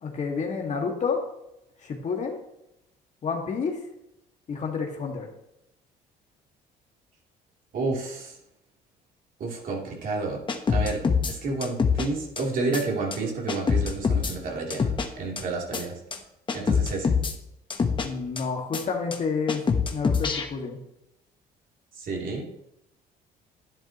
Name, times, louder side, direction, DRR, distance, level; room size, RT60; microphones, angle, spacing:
voice 1, 0.0-1.2 1.8-2.4 3.2-3.8 4.5-5.3 18.0-19.6 19.9-20.8, left 5 dB, 45° left, 2 dB, 1.9 m, -29 dB
voice 2, 7.7-8.4 9.4-10.4 10.7-11.0 11.3-15.9 16.5-17.2 22.0-22.5, right 3 dB, 55° right, -2 dB, 3.1 m, -30 dB
sound 1, 10.5-11.3 11.6-12.1 12.4-12.5 12.7-12.8 13.1-13.2 13.5-14.3 14.7-15.1 15.4-15.5 15.7-15.8 16.1-16.2 16.5-17.3 17.7-18.1 18.4-18.5 18.7-18.8 19.1-19.2 19.5-20.4, left 5 dB, 30° left, 1.1 m, -24 dB
11.0 x 10.0 x 3.0 m, 0.82 s
cardioid pair, 110°, 17 cm